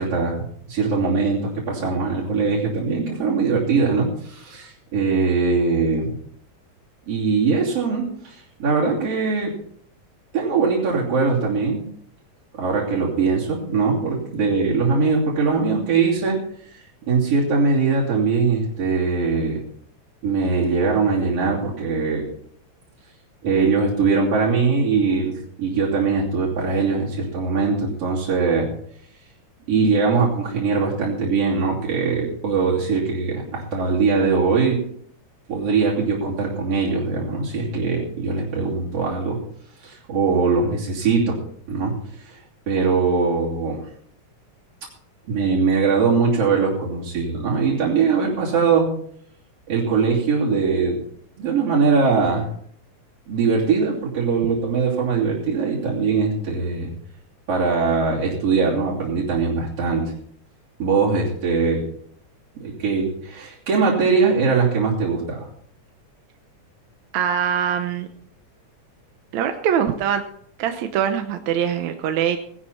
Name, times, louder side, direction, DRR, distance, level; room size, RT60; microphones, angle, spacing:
voice 1, 0.0-6.1 7.1-9.5 10.3-11.8 12.5-16.4 17.1-19.6 20.2-22.2 23.4-28.7 29.7-34.8 35.5-39.4 39.8-41.4 41.7-41.9 42.2-42.4 42.7-43.8 45.3-48.9 49.7-51.0 51.4-52.5 53.3-56.9 57.5-60.1 60.8-61.8 62.6-65.5, right 4 dB, 55° right, -6 dB, 4.0 m, -21 dB
voice 2, 67.1-68.1 69.3-70.3 70.6-72.4, right 8 dB, 75° right, 6 dB, 2.2 m, -23 dB
18.5 x 11.0 x 4.3 m, 0.64 s
omnidirectional pair, 3.4 m